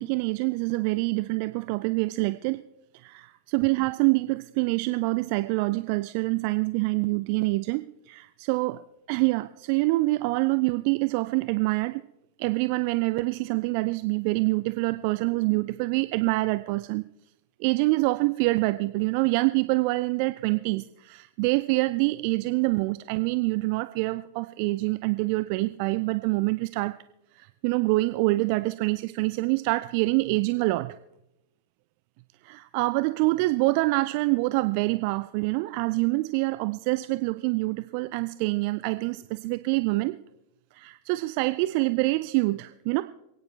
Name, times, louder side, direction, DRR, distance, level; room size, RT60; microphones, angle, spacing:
voice 1, 0.0-2.6 2.9-8.8 9.1-12.0 12.4-17.0 17.6-26.9 27.3-30.9 32.4-40.2 40.7-43.0, right 22 dB, 45° right, 12 dB, 0.4 m, -26 dB
27.5 x 9.3 x 3.2 m, 0.87 s
figure-of-eight pair, 90°, 0 cm